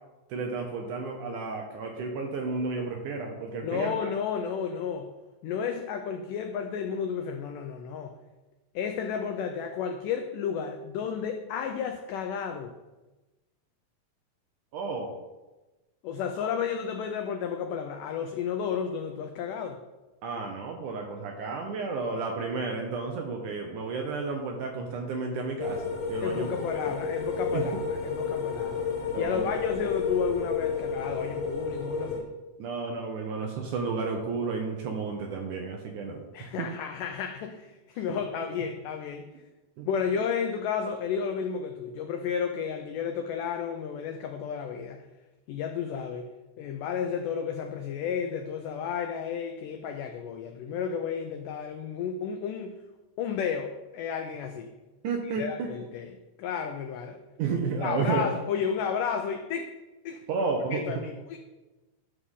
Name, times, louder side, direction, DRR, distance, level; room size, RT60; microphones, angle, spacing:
voice 1, 0.3-4.1 14.7-15.1 16.4-16.5 20.2-26.7 27.5-27.6 29.1-29.6 32.6-36.2 36.6-36.7 39.8-39.9 55.0-55.7 57.4-58.3 60.3-60.8, right 4 dB, 70° right, 2 dB, 2.0 m, -32 dB
voice 2, 3.6-5.1 5.4-8.2 8.8-12.8 16.0-19.8 26.2-28.9 29.2-32.3 36.3-39.2 39.9-45.0 45.5-46.3 46.6-52.8 53.2-54.7 55.2-57.2 57.8-59.7 60.1-60.2 60.7-61.4, left 7 dB, 85° left, 6 dB, 1.8 m, -32 dB
sound 1, 25.6-32.2, left 5 dB, 60° left, 1.8 m, -31 dB
12.5 x 6.6 x 3.7 m, 1.1 s
omnidirectional pair, 4.4 m